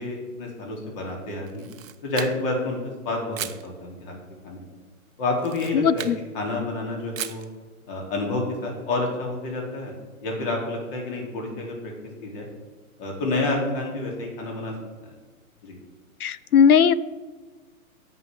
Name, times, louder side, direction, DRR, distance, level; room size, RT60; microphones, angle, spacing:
voice 1, 0.0-1.7 2.0-2.8 3.0-4.2 4.4-4.6 5.2-6.1 6.3-7.4 7.9-9.9 10.2-11.9 12.2-12.5 13.0-14.7 15.0-15.1 15.6-15.8, left 2 dB, 40° left, 0 dB, 2.8 m, -29 dB
Camera, 1.5-2.6 3.3-3.7 5.3-6.2 7.2-7.5, right 10 dB, 65° right, 0.7 m, -36 dB
voice 2, 5.7-6.2 16.2-16.9, left 7 dB, 90° left, 18 dB, 0.5 m, -18 dB
17.0 x 5.7 x 3.4 m, 1.4 s
hypercardioid pair, 125°, 43 cm